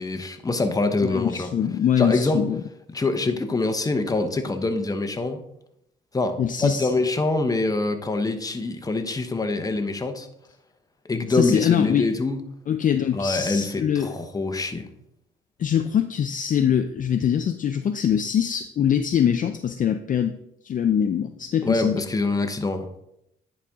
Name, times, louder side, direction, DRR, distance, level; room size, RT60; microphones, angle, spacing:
voice 1, 0.0-1.5 2.0-2.4 2.9-5.4 6.1-10.3 11.0-12.4 13.1-14.9 21.6-22.9, left 2 dB, 20° left, 7 dB, 0.9 m, -25 dB
voice 2, 1.0-2.6 6.4-6.9 11.3-12.1 12.7-14.1 15.6-20.3 20.6-22.0, left 9 dB, 40° left, 8 dB, 0.4 m, -23 dB
10.0 x 4.2 x 3.6 m, 0.80 s
cardioid pair, 90°, 20 cm